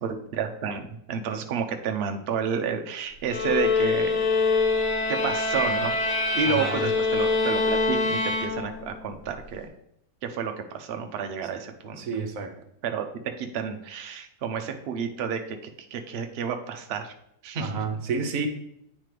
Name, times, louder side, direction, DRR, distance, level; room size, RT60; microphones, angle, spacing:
voice 1, 0.0-4.2 5.1-6.0 6.3-9.7 10.2-12.0 12.8-13.1 13.4-17.1 17.4-17.8, right 6 dB, 90° right, 5 dB, 0.5 m, -30 dB
sound 1, 3.3-9.0, left 3 dB, 70° left, 1.9 m, -25 dB
voice 2, 6.5-6.9 12.0-12.5 17.6-18.5, right 5 dB, 60° right, 6 dB, 1.0 m, -30 dB
9.0 x 4.2 x 3.2 m, 0.77 s
omnidirectional pair, 1.9 m